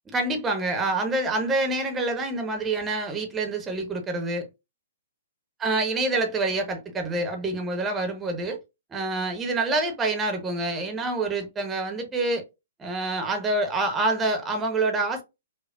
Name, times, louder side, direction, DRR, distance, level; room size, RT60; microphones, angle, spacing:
voice 1, 0.1-4.5 5.6-8.6 8.9-12.4 12.8-15.2, right 2 dB, 15° right, 1.0 m, -27 dB
4.9 x 2.3 x 2.4 m
figure-of-eight pair, 115°, 0 cm